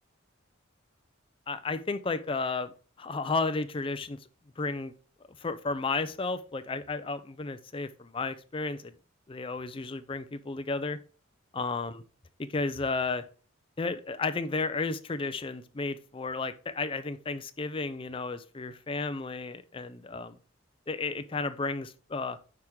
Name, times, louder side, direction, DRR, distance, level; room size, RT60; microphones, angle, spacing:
voice 1, 1.5-2.7 3.0-4.2 4.6-4.9 5.4-8.9 9.3-11.0 11.5-12.0 12.4-13.2 13.8-20.4 20.9-22.4, left 3 dB, 25° left, 0.5 m, -33 dB
9.5 x 3.6 x 4.6 m
head